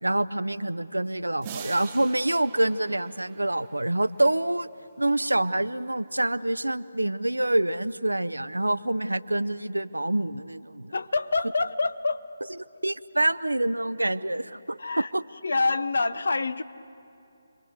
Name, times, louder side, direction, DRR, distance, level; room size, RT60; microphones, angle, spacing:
voice 1, 0.0-4.7 5.0-10.9 12.8-15.2, right 1 dB, 80° right, 0.7 m, -26 dB
sound 1, 1.4-4.2, right 9 dB, 25° right, 0.9 m, -44 dB
voice 2, 10.9-12.3 14.8-15.1 15.4-16.6, left 3 dB, 60° left, 0.9 m, -26 dB
29.0 x 22.5 x 8.1 m
figure-of-eight pair, 150°, 0 cm